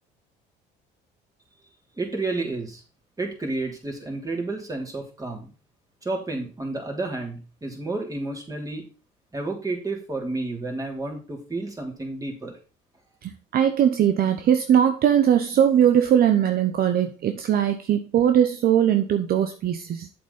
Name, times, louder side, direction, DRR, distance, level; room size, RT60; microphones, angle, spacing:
voice 1, 2.0-2.8 3.2-5.5 6.0-8.8 9.3-12.5, right 2 dB, 20° right, 1 dB, 3.4 m, -31 dB
voice 2, 13.2-20.1, right 9 dB, 55° right, 8 dB, 0.8 m, -20 dB
7.8 x 7.6 x 4.2 m, 0.34 s
supercardioid pair, 85°, 19 cm